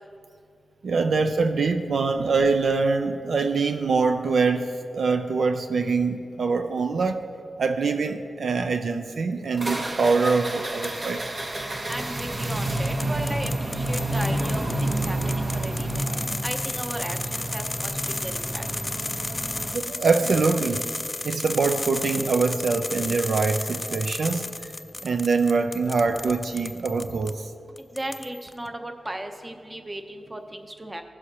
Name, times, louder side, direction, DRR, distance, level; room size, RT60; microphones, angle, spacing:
voice 1, 0.8-7.2 7.6-11.2 19.3-19.4 19.7-20.9 21.2-24.7 25.0-27.5, right 4 dB, 75° right, 7 dB, 0.4 m, -24 dB
sound 1, 9.6-19.8, right 1 dB, 45° right, 0.9 m, -29 dB
sound 2, 10.8-11.2 11.9-27.3 27.8-28.5, left 2 dB, 25° left, 0.3 m, -34 dB
voice 2, 11.9-16.0 16.4-17.9 18.2-18.6 27.9-31.0, right 1 dB, 20° right, 6 dB, 0.7 m, -35 dB
15.5 x 6.3 x 2.9 m, 2.5 s
cardioid pair, 75°, 0 cm